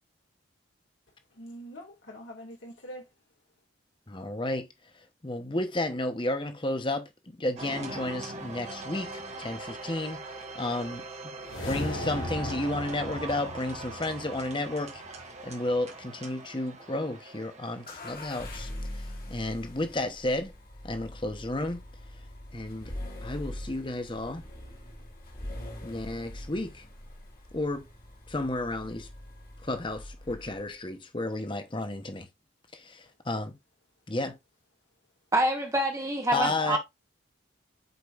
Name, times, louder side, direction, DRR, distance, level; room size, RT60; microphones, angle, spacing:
voice 1, 1.3-3.1 36.3-36.8, left 3 dB, 65° left, 2.2 m, -39 dB
voice 2, 4.1-4.7 5.0-11.3 11.6-15.0 15.4-20.5 20.8-21.8 22.5-22.9 23.2-24.4 25.8-26.8 27.5-27.9 28.3-29.1 29.6-32.3 32.7-33.6 34.1-34.4 36.3-36.8, left 2 dB, 25° left, 0.9 m, -32 dB
sound 1, 7.6-17.9, right 3 dB, 35° right, 1.4 m, -41 dB
sound 2, 11.4-15.8, left 1 dB, 90° left, 2.2 m, -38 dB
sound 3, 17.9-30.7, left 1 dB, 45° left, 2.5 m, -43 dB
voice 3, 35.3-36.8, right 1 dB, 15° right, 1.2 m, -26 dB
7.9 x 5.2 x 2.5 m
head